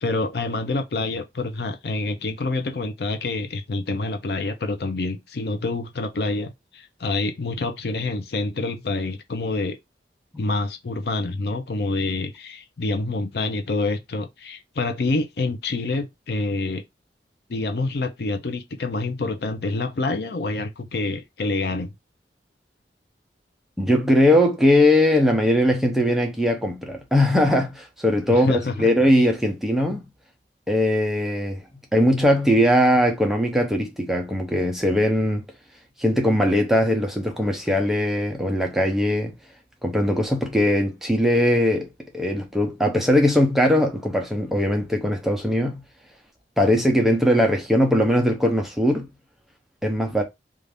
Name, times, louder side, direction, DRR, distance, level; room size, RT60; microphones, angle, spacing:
voice 1, 0.0-9.8 10.4-16.8 17.5-21.9 28.3-28.9, left 2 dB, 60° left, 0.5 m, -27 dB
voice 2, 23.8-28.5 28.8-30.0 30.7-31.6 31.9-35.4 36.0-39.3 39.8-41.9 42.1-45.8 46.6-49.1 49.8-50.2, left 1 dB, ahead, 0.6 m, -20 dB
2.6 x 2.5 x 3.3 m
head